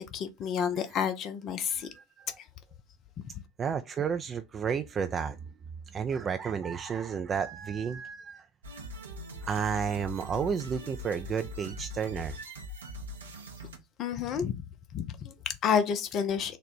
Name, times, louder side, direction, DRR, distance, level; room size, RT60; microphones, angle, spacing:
voice 1, 0.0-1.9 14.0-14.6 14.9-16.6, left 7 dB, 45° left, 0.5 m, -30 dB
voice 2, 1.8-2.4 3.6-5.4 5.9-8.5 9.4-12.4, right 6 dB, 30° right, 0.3 m, -32 dB
sound 1, 8.6-13.8, equal, 80° right, 0.8 m, -42 dB
4.0 x 2.1 x 4.3 m
figure-of-eight pair, 75°, 0 cm